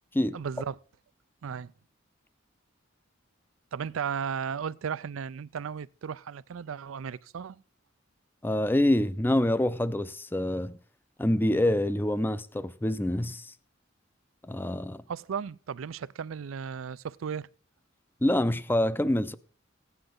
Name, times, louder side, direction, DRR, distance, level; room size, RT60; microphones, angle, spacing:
voice 1, 0.3-0.8 1.4-1.7 3.7-7.6 15.1-17.5, right 7 dB, 90° right, 0.4 m, -35 dB
voice 2, 8.4-10.8 11.2-13.5 14.5-15.0 18.2-19.3, left 1 dB, 10° left, 0.5 m, -26 dB
16.5 x 9.6 x 3.9 m
head